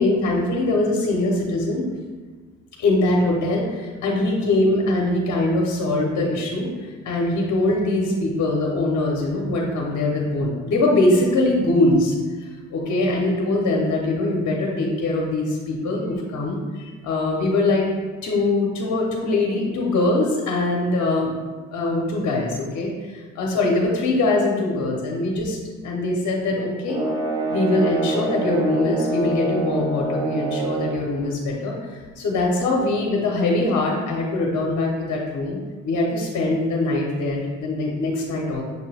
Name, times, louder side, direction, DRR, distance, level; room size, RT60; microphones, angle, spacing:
voice 1, 0.0-1.9 2.8-6.7 7.0-12.1 12.4-17.8 18.2-21.3 21.7-25.6 25.8-27.0 27.5-35.6 35.8-38.6, left 2 dB, 65° left, -1 dB, 0.8 m, -22 dB
sound 1, 26.9-31.1, right 2 dB, 15° right, 0.5 m, -26 dB
6.5 x 2.2 x 3.3 m, 1.4 s
cardioid pair, 90°, 30 cm